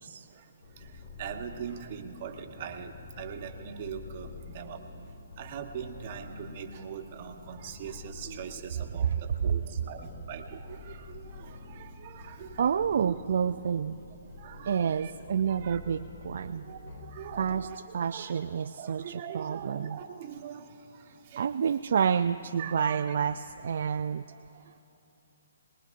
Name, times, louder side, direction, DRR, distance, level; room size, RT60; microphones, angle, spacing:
voice 1, 0.3-4.8 5.4-13.2 13.5-13.7 14.4-15.1 15.5-15.8 16.3-18.5 18.8-21.7 22.6-23.1 24.3-24.8, right 8 dB, 40° right, 5 dB, 1.1 m, -42 dB
sound 1, 0.6-17.7, left 3 dB, 55° left, 1.8 m, -47 dB
voice 2, 12.6-14.0 14.7-16.7 17.4-17.7 17.9-20.0 21.4-24.3, right 7 dB, 60° right, 9 dB, 0.3 m, -29 dB
23.0 x 20.0 x 2.5 m, 2.9 s
hypercardioid pair, 140°, 0 cm